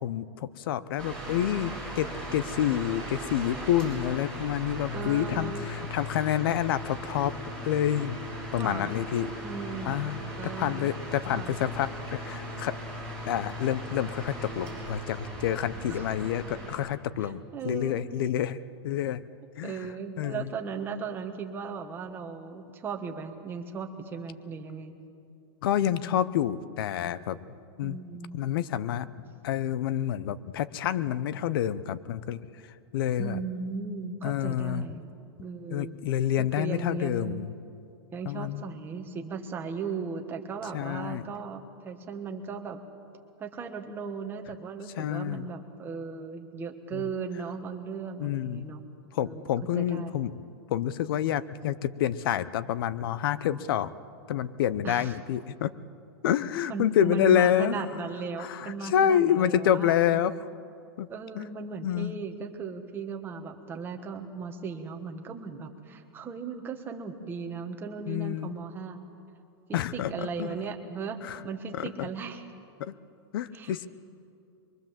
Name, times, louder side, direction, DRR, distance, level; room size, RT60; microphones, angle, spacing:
voice 1, 0.0-7.3 7.6-8.2 8.5-9.3 9.8-12.8 13.3-19.2 19.6-19.9 20.2-20.5 25.6-27.5 27.8-28.0 28.3-29.1 29.4-32.4 32.9-33.4 34.2-34.9 35.7-37.5 38.3-38.7 40.7-41.2 45.0-45.5 46.9-47.1 48.2-48.7 49.1-50.3 50.7-53.9 54.3-55.7 56.2-57.8 58.4-60.3 61.0-61.1 61.4-61.5 61.8-62.1 68.1-68.6 69.7-70.5 71.2-71.4 71.7-72.1 72.8-72.9 73.3-73.9, left 10 dB, 60° left, 16 dB, 0.8 m, -28 dB
sound 1, 1.0-16.7, equal, 5° left, 6.2 m, -38 dB
voice 2, 4.9-5.7 8.6-8.9 9.4-10.0 10.4-10.9 11.3-11.5 15.9-16.0 17.2-18.0 19.6-24.9 27.8-28.4 33.2-35.1 35.4-35.9 36.4-37.5 38.1-42.8 43.4-48.8 49.2-49.5 49.7-50.1 54.8-55.1 56.7-60.2 61.1-69.0 69.7-71.2 71.4-72.4 73.5-73.9, right 5 dB, 15° right, 3 dB, 1.6 m, -37 dB
23.5 x 23.0 x 7.5 m, 2.5 s
supercardioid pair, 160°, 13 cm